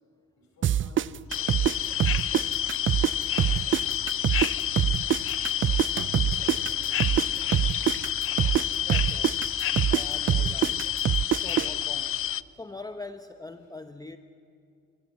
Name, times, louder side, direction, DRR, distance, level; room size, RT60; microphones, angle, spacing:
voice 1, 0.4-5.5 6.1-8.1 9.1-9.2, left 2 dB, 65° left, 0 dB, 6.8 m, -55 dB
sound 1, 0.6-3.1 3.4-7.3 7.5-11.7, right 11 dB, 40° right, 0.5 m, -24 dB
sound 2, 1.3-12.4, left 11 dB, 45° left, 0.5 m, -29 dB
voice 2, 8.8-11.0 11.4-12.3 12.5-14.2, left 3 dB, 10° left, 9 dB, 0.8 m, -43 dB
29.0 x 15.5 x 8.1 m, 2.5 s
cardioid pair, 90°, 30 cm